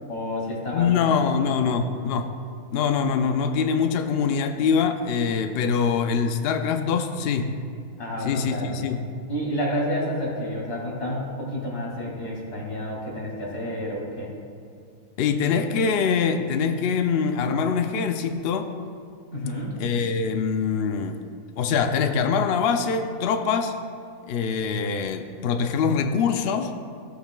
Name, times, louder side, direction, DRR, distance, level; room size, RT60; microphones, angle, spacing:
voice 1, 0.1-1.0 1.5-1.6 8.0-8.8 9.3-14.3 19.3-19.7, equal, 50° left, -4 dB, 2.6 m, -30 dB
voice 2, 0.7-2.3 2.7-7.5 8.2-9.0 15.2-18.7 19.8-21.2 21.6-23.7 24.3-26.7, left 6 dB, 75° left, 7 dB, 0.5 m, -24 dB
16.0 x 8.0 x 2.2 m, 2.2 s
omnidirectional pair, 1.5 m